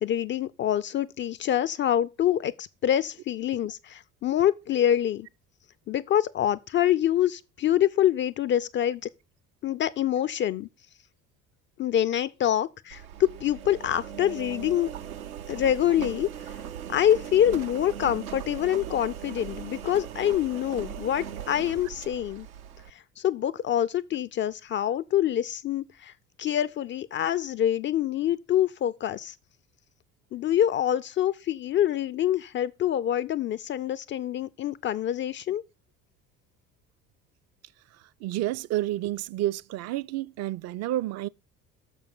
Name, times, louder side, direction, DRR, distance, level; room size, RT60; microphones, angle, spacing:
voice 1, 0.0-5.3 5.9-9.0 9.6-10.7 11.8-14.9 15.5-16.3 16.9-22.5 22.9-26.1 26.4-29.3 30.3-35.6, left 11 dB, 30° left, 0.4 m, -26 dB
Engine, 12.9-22.9, right 9 dB, 80° right, 0.7 m, -39 dB
voice 2, 38.2-41.3, right 15 dB, 40° right, 0.4 m, -30 dB
6.8 x 5.5 x 6.5 m
figure-of-eight pair, 60°, 42 cm